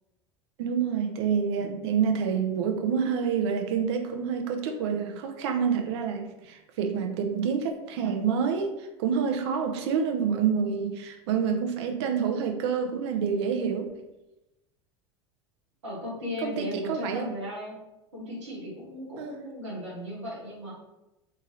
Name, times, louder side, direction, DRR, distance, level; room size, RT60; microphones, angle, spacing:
voice 1, 0.6-13.9 16.4-17.3 19.2-19.4, right 6 dB, 65° right, 4 dB, 0.5 m, -27 dB
voice 2, 15.8-17.8 18.1-20.7, left 1 dB, 85° right, -6 dB, 1.1 m, -36 dB
2.8 x 2.6 x 2.7 m, 0.96 s
hypercardioid pair, 80°, 15 cm